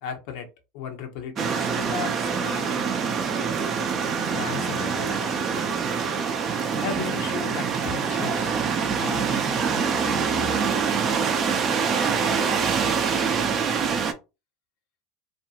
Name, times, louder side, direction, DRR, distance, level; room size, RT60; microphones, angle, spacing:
voice 1, 0.0-0.5 0.7-2.8 4.3-5.6 6.7-8.6 9.0-9.4 9.7-10.3, left 6 dB, 65° left, 0.7 m, -36 dB
sound 1, 1.4-14.1, right 6 dB, 40° right, 0.5 m, -25 dB
2.5 x 2.2 x 2.8 m
hypercardioid pair, 95°, 0 cm